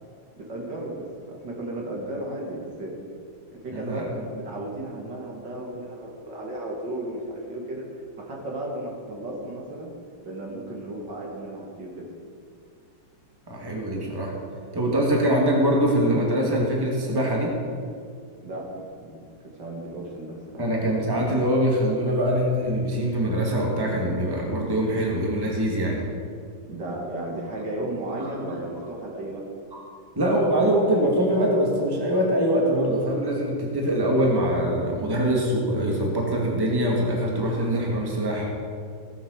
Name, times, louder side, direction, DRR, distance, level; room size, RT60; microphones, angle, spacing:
voice 1, 0.4-2.9 3.5-7.9 8.2-9.9 10.2-12.0 18.4-19.2 19.6-20.6 26.7-29.5, right 1 dB, 55° right, -2 dB, 2.6 m, -34 dB
voice 2, 3.7-4.1 13.5-14.3 14.7-17.5 20.6-26.0 28.2-28.3 29.7-29.8 30.2-38.4, right 1 dB, 10° right, -2 dB, 2.0 m, -23 dB
16.5 x 8.0 x 6.6 m, 2.2 s
omnidirectional pair, 2.4 m